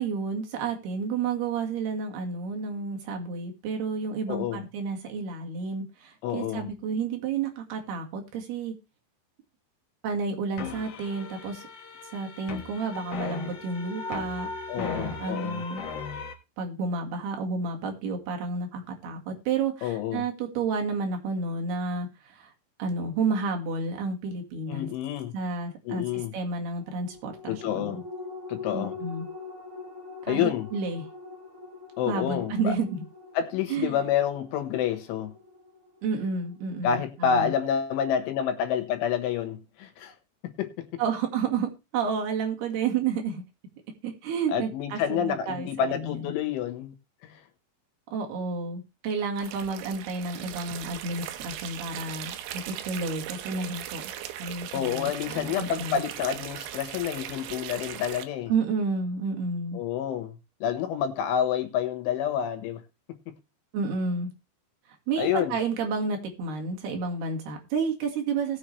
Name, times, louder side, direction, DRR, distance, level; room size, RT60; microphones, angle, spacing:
voice 1, 0.0-8.7 10.0-11.6 12.1-14.5 14.8-15.8 16.6-22.5 22.8-24.9 25.3-28.0 28.7-29.3 30.2-31.0 32.1-33.0 33.7-34.0 36.0-37.5 41.0-43.4 44.0-46.3 48.1-54.0 54.4-56.0 58.5-59.8 63.7-64.3 64.9-68.6, right 4 dB, 65° right, 3 dB, 3.6 m, -31 dB
voice 2, 4.3-4.6 6.2-6.7 14.7-15.6 19.8-20.2 24.7-25.3 25.9-26.3 27.5-28.0 28.5-29.0 30.3-30.7 32.0-32.7 33.4-35.4 36.8-40.2 40.4-41.0 44.5-46.9 47.2-47.4 54.7-58.5 59.7-60.4 60.6-62.8 63.1-63.3 65.2-65.6, left 8 dB, 80° left, 7 dB, 3.8 m, -28 dB
sound 1, 10.6-16.3, left 4 dB, 60° left, 1.8 m, -38 dB
sound 2, 26.8-37.6 38.0-38.1, left 4 dB, 30° right, 7.4 m, -44 dB
sound 3, 49.4-58.2, right 11 dB, 80° right, 3.3 m, -39 dB
19.0 x 7.1 x 3.3 m, 0.26 s
omnidirectional pair, 5.4 m